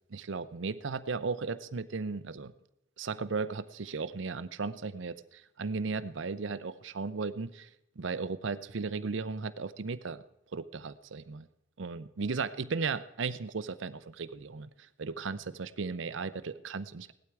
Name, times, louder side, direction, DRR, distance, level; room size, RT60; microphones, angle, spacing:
voice 1, 0.1-2.5 3.0-7.5 8.0-10.2 10.5-11.5 11.8-14.7 15.0-17.1, right 4 dB, 70° right, 15 dB, 0.6 m, -35 dB
17.0 x 11.5 x 4.7 m, 0.85 s
head